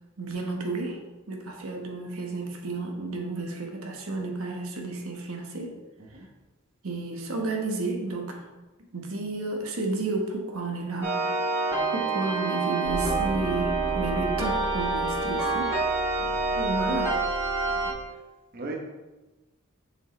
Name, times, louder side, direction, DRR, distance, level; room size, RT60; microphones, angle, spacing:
voice 1, 0.2-1.0 1.3-5.8 6.8-8.4 8.9-11.1 11.9-15.8 16.6-17.1, right 2 dB, 85° right, 1 dB, 1.2 m, -31 dB
sound 1, 11.0-17.9, right 3 dB, 15° right, 2.0 m, -27 dB
sound 2, 12.8-17.9, equal, 30° right, 2.2 m, -37 dB
voice 2, 16.2-16.5 17.7-18.2 18.5-18.7, right 2 dB, 45° right, -1 dB, 1.1 m, -41 dB
6.9 x 6.3 x 3.2 m, 1.1 s
head